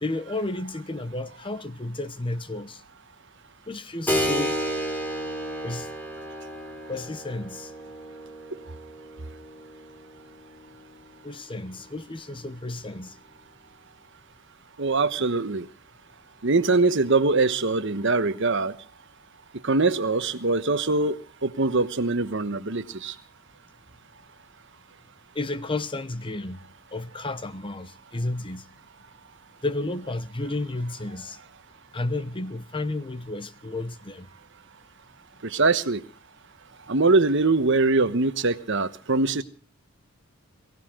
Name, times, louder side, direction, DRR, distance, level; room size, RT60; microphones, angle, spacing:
voice 1, 0.0-2.8 3.7-4.6 5.6-5.9 6.9-7.7 11.2-13.1 25.3-28.7 29.6-31.4 31.9-34.3, left 2 dB, 25° left, 1.0 m, -32 dB
Keyboard (musical), 4.1-12.3, equal, 10° left, 3.4 m, -33 dB
voice 2, 14.8-15.7 16.4-18.8 19.6-21.2 21.4-23.1 35.4-36.0 36.9-39.4, right 3 dB, 60° right, 1.2 m, -22 dB
22.5 x 16.5 x 3.8 m
head